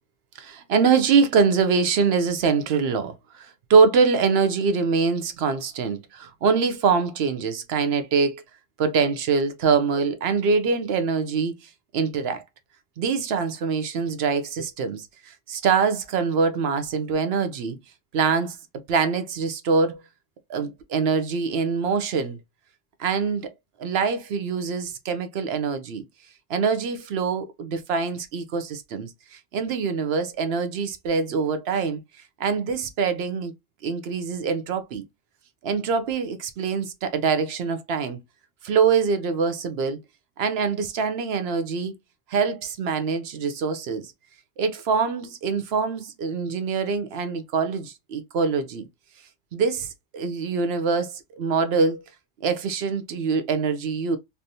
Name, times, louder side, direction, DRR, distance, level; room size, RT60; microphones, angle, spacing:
voice 1, 0.4-8.4 8.8-12.4 13.0-17.8 18.1-18.6 18.9-20.0 20.5-22.4 23.0-23.5 23.8-26.0 26.5-32.0 32.4-33.5 33.8-35.0 35.6-38.2 38.6-40.0 40.4-41.9 42.3-44.1 44.6-48.9 49.5-52.0 52.4-54.2, right 5 dB, 65° right, 0.8 m, -24 dB
3.3 x 2.7 x 2.6 m
omnidirectional pair, 1.2 m